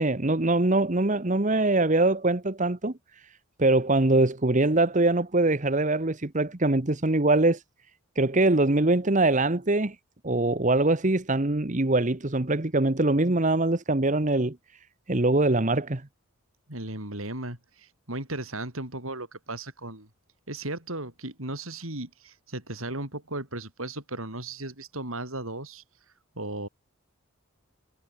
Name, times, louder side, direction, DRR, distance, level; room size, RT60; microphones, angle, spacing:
voice 1, 0.0-3.3 3.6-7.6 8.2-10.0 10.2-14.6 15.1-16.1, right 2 dB, 35° right, 1.2 m, -23 dB
voice 2, 16.7-20.1 20.5-25.8 26.4-26.7, right 2 dB, 80° right, 7.5 m, -36 dB
head